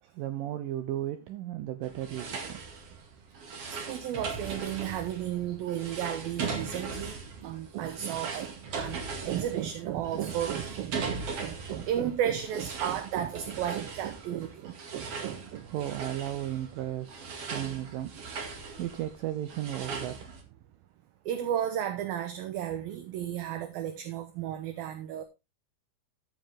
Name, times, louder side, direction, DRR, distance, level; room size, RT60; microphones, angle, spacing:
voice 1, 0.1-2.9 15.7-20.6, right 12 dB, 90° right, 1.9 m, -35 dB
sound 1, 1.8-20.4, right 4 dB, 45° right, 2.4 m, -39 dB
voice 2, 3.7-15.7 21.3-25.2, right 10 dB, 70° right, 2.6 m, -33 dB
14.0 x 7.8 x 3.6 m
omnidirectional pair, 4.9 m